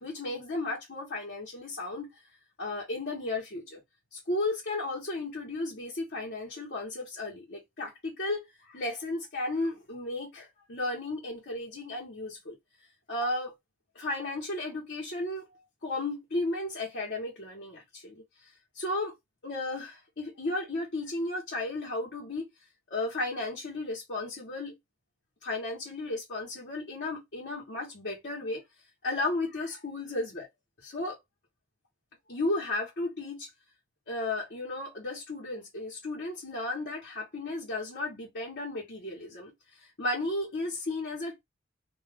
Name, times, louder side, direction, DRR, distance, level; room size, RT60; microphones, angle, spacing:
voice 1, 0.0-2.1 2.6-3.8 4.1-12.6 13.1-13.5 13.9-15.5 15.8-18.2 18.7-19.1 19.4-22.5 22.9-24.8 25.4-28.6 29.0-30.5 30.8-31.2 32.3-33.5 34.1-39.5 40.0-41.4, left 2 dB, 55° left, 1.1 m, -34 dB
2.5 x 2.3 x 3.3 m
head